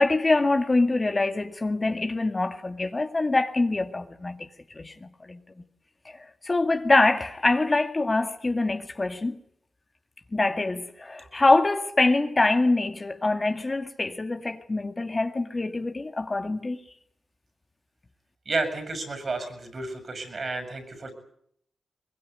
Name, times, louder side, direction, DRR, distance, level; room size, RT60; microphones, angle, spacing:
voice 1, 0.0-4.5 4.7-5.4 6.1-9.4 10.3-16.8, left 2 dB, 35° left, 2.1 m, -24 dB
voice 2, 18.5-21.1, right 3 dB, 50° right, 7.3 m, -31 dB
22.0 x 21.5 x 9.4 m
supercardioid pair, 40°, 0 cm